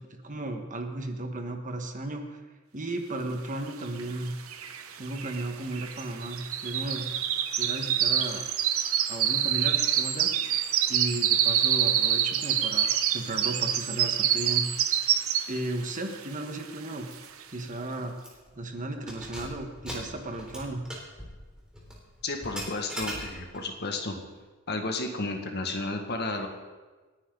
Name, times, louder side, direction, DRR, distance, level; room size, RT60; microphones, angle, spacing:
voice 1, 0.0-2.4 2.7-4.4 5.0-7.1 7.6-8.4 9.1-10.5 10.9-15.0 15.5-17.1 17.5-18.1 18.5-20.8, right 2 dB, 40° right, 4 dB, 1.5 m, -35 dB
sound 1, 4.0-4.1 4.3-15.7 16.1-16.4 16.9-17.0, right 10 dB, 85° right, 1.0 m, -26 dB
Keys jangling, 17.1-17.3 17.6-17.7 18.2-18.5 18.9-23.7, equal, 5° right, 3.6 m, -41 dB
voice 2, 22.2-24.2 24.7-26.5, left 2 dB, 55° left, 3 dB, 1.9 m, -32 dB
29.0 x 9.6 x 4.0 m, 1.3 s
head